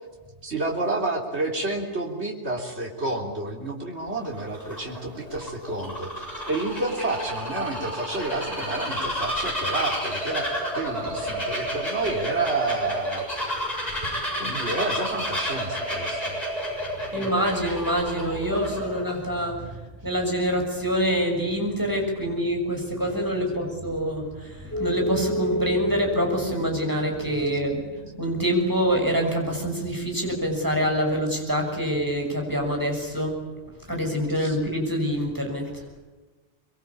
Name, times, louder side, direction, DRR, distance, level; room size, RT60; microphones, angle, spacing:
voice 1, 0.4-10.5 10.7-13.6 14.4-16.4 17.0-17.2 34.4-34.6, right 2 dB, 75° right, 0 dB, 3.8 m, -30 dB
Bird vocalization bird call bird song, 4.1-19.1, equal, 35° left, 7.5 m, -30 dB
voice 2, 17.1-27.8 28.2-33.3 33.9-35.8, equal, 15° right, 2 dB, 6.8 m, -26 dB
sound 1, 24.7-31.6, equal, 15° left, 6.9 m, -33 dB
25.5 x 23.0 x 8.7 m, 1.2 s
omnidirectional pair, 1.1 m